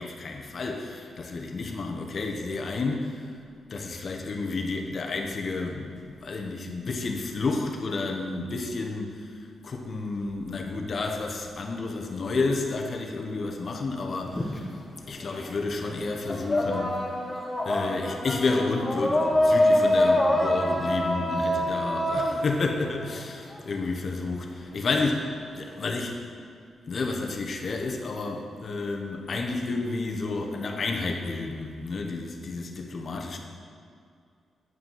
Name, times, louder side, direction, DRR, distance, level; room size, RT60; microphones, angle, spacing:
voice 1, 0.0-3.3 3.7-9.3 9.6-14.7 15.1-16.9 17.6-26.2 26.9-33.4, left 3 dB, 45° left, 2 dB, 1.0 m, -30 dB
sound 1, 14.3-15.5 15.8-23.6, left 1 dB, 15° left, 0.9 m, -25 dB
9.2 x 5.7 x 5.6 m, 2.3 s
cardioid pair, 130°, 0 cm